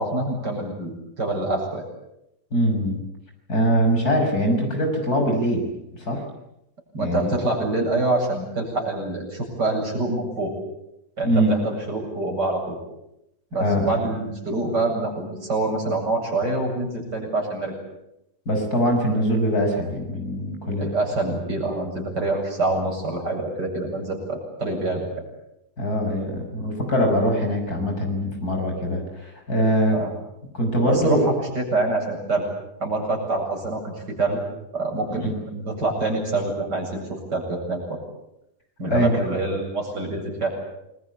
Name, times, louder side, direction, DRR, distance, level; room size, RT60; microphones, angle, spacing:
voice 1, 0.0-1.9 6.9-10.5 11.2-12.8 13.5-17.7 20.8-25.1 29.9-30.1 30.9-32.4 32.8-34.4 34.7-38.0 38.8-40.6, right 2 dB, 90° right, 1 dB, 8.6 m, -26 dB
voice 2, 2.5-3.0 3.5-5.6 6.0-6.2 7.0-7.4 11.2-11.6 13.6-14.0 18.5-20.9 25.8-30.0 30.5-31.3 35.2-35.3 38.9-39.1, equal, 65° left, 3 dB, 6.8 m, -22 dB
28.0 x 22.0 x 8.6 m, 0.83 s
omnidirectional pair, 1.8 m